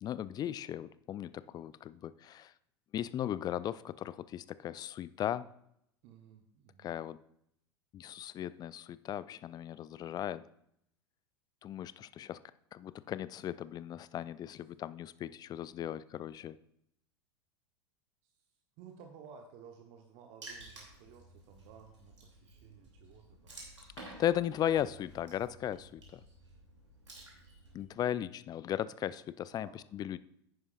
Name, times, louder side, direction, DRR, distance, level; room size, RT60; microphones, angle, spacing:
voice 1, 0.0-2.5 2.9-5.5 6.8-7.2 7.9-10.4 11.6-12.4 12.7-16.6 24.0-26.2 27.7-30.2, left 11 dB, 25° left, 17 dB, 0.4 m, -37 dB
voice 2, 6.0-6.9 18.2-18.3 18.8-23.6 29.5-29.8, right 7 dB, 50° right, 5 dB, 1.0 m, -55 dB
Water / Splash splatter, 20.4-27.8, right 2 dB, 85° right, 2.8 m, -53 dB
10.5 x 9.5 x 2.5 m, 0.74 s
figure-of-eight pair, 85°, 15 cm